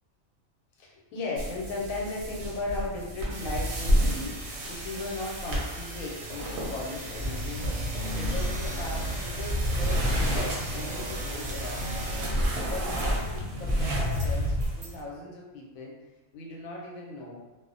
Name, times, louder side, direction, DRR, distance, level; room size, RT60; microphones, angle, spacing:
voice 1, 0.8-12.1 12.7-15.9 16.3-17.4, left 2 dB, 85° left, -2 dB, 1.0 m, -37 dB
sound 1, 1.4-15.0, equal, 65° right, 0.7 m, -31 dB
sound 2, 3.3-12.3, equal, 85° right, 1.0 m, -38 dB
sound 3, 7.2-14.7, equal, 55° left, 0.6 m, -33 dB
2.5 x 2.0 x 2.5 m, 1.2 s
omnidirectional pair, 1.4 m